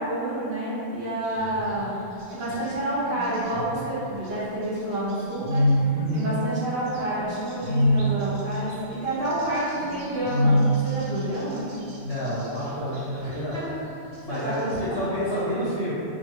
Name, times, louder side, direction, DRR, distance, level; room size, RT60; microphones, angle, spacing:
voice 1, 0.0-2.0 2.3-5.6 6.1-11.7 13.2-13.8 14.3-15.1, right 1 dB, 55° right, -9 dB, 1.1 m, -29 dB
sound 1, 1.2-1.9 2.2-2.7 3.1-4.3 4.8-6.2 6.9-12.6 12.9-13.6 14.1-15.0, equal, 90° right, 1.1 m, -26 dB
voice 2, 5.9-6.3 12.0-13.6 14.2-15.9, left 1 dB, 60° left, -10 dB, 0.8 m, -29 dB
2.8 x 2.5 x 2.8 m, 2.8 s
omnidirectional pair, 1.3 m